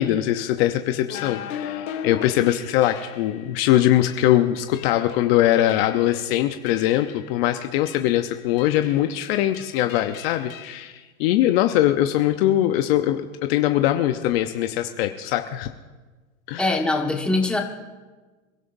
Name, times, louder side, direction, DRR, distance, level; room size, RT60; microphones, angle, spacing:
voice 1, 0.0-15.7 16.5-16.7, left 13 dB, 45° left, 7 dB, 0.8 m, -22 dB
sound 1, 1.1-3.4 4.0-4.2 4.7-5.3 5.7-6.2 6.7-7.2 7.9-8.1 8.6-9.1 9.5-10.8, left 10 dB, 70° left, 2.6 m, -37 dB
voice 2, 16.6-17.6, left 2 dB, ahead, 0 dB, 1.5 m, -22 dB
27.5 x 12.5 x 2.7 m, 1.3 s
hypercardioid pair, 135°, 42 cm